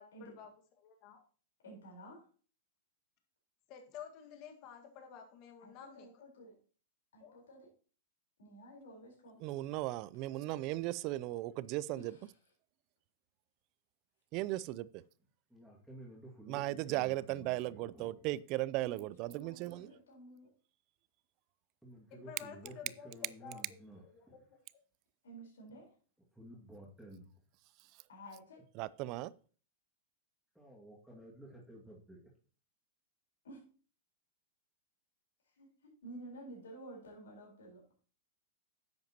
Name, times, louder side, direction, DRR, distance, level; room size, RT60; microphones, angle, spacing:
voice 1, 0.0-1.2 3.7-6.2 7.2-7.4 8.9-9.4 22.1-24.6, left 7 dB, 45° left, 1.7 m, -52 dB
voice 2, 1.6-2.2 5.6-6.5 7.1-7.7 8.4-9.4 11.9-12.3 18.9-20.5 25.2-25.8 28.1-28.6 33.4-33.6 35.6-35.7 36.0-37.8, right 1 dB, 85° left, 4.2 m, -52 dB
voice 3, 9.4-12.1 14.3-15.0 16.5-19.9 28.8-29.3, right 17 dB, 45° right, 0.4 m, -37 dB
voice 4, 15.5-18.3 21.8-24.4 26.3-27.4 30.5-32.3, right 1 dB, ahead, 2.1 m, -53 dB
10.5 x 7.8 x 2.9 m
hypercardioid pair, 120°, 0 cm